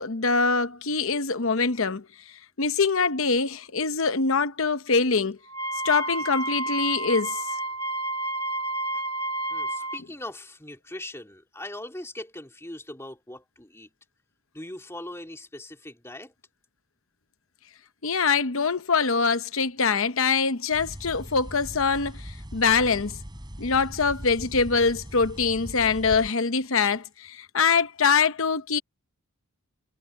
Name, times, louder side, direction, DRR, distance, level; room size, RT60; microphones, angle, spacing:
voice 1, 0.0-2.1 2.6-5.4 5.8-7.4 18.0-23.1 23.6-28.8, left 5 dB, 60° left, 0.9 m, -24 dB
Wind instrument woodwind instrument, 5.5-10.0, right 2 dB, 90° right, 2.4 m, -30 dB
voice 2, 9.5-13.9 14.5-16.3, left 1 dB, 10° left, 3.0 m, -40 dB
sound 1, 20.7-26.3, equal, 20° right, 4.5 m, -40 dB
head